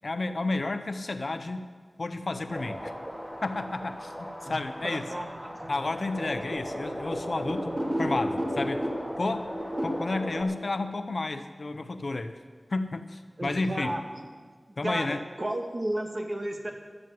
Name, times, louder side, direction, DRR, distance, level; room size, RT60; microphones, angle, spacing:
voice 1, 0.0-1.6 2.0-2.9 3.4-5.0 5.7-8.9 9.2-9.5 9.8-12.4 12.7-13.9 14.8-15.2, left 2 dB, 70° left, 9 dB, 0.8 m, -31 dB
sound 1, 2.5-10.4, equal, 15° right, 2.9 m, -34 dB
voice 2, 4.8-5.9 6.3-6.4 13.4-14.3 14.8-16.7, right 1 dB, 45° right, 3 dB, 1.8 m, -33 dB
12.5 x 9.5 x 7.6 m, 1.5 s
wide cardioid pair, 55°, 0 cm